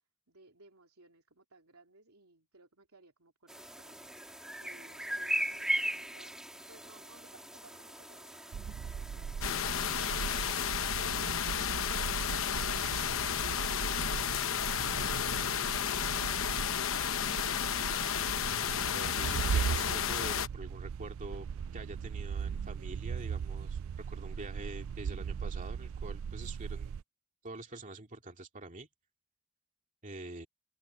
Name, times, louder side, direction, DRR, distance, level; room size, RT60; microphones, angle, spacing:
voice 1, 0.3-4.3 4.6-10.4 15.7-16.6, right 2 dB, 85° right, 3.2 m, -60 dB
sound 1, 3.5-10.5, right 1 dB, 5° right, 1.8 m, -38 dB
sound 2, 8.5-27.0, right 7 dB, 65° right, 0.3 m, -38 dB
sound 3, 9.4-20.5, left 8 dB, 65° left, 0.9 m, -32 dB
voice 2, 18.9-21.5 21.7-23.8 24.1-26.9 27.4-28.9 30.0-30.5, right 2 dB, 35° right, 2.6 m, -45 dB
head